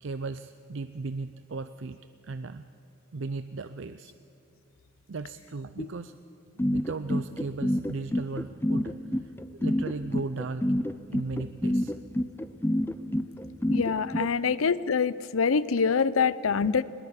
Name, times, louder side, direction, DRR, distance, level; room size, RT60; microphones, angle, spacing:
voice 1, 0.0-2.0 2.2-2.6 3.1-4.1 5.1-6.1 6.7-10.8 11.1-12.0 14.2-14.4, right 3 dB, 65° right, 11 dB, 0.5 m, -36 dB
sound 1, 6.6-14.2, left 1 dB, 10° left, 0.5 m, -27 dB
voice 2, 13.7-16.8, left 5 dB, 85° left, 18 dB, 0.6 m, -25 dB
21.0 x 19.0 x 8.2 m, 2.6 s
head